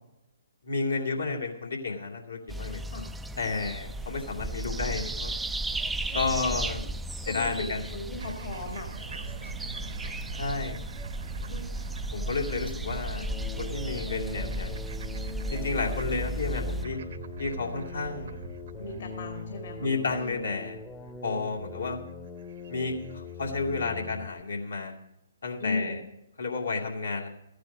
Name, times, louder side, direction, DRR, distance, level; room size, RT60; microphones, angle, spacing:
voice 1, 0.6-2.8 3.4-5.4 6.1-6.8 7.3-7.9 10.4-10.8 12.1-13.3 13.6-14.8 15.5-17.0 17.4-18.4 19.8-20.8 21.2-22.0 22.7-24.9 25.4-26.0 26.4-27.3, left 3 dB, 75° left, -1 dB, 2.5 m, -31 dB
sound 1, 2.5-16.9, right 1 dB, 5° right, 0.4 m, -35 dB
voice 2, 6.0-6.6 7.2-8.9 11.5-11.8 18.8-19.9 25.6-26.0, left 3 dB, 60° left, 4 dB, 2.0 m, -37 dB
sound 2, 8.2-23.5, right 5 dB, 55° right, 0.9 m, -42 dB
sound 3, 13.1-24.4, left 5 dB, 15° left, 0.8 m, -42 dB
14.0 x 10.0 x 5.1 m, 0.85 s
figure-of-eight pair, 130°, 0 cm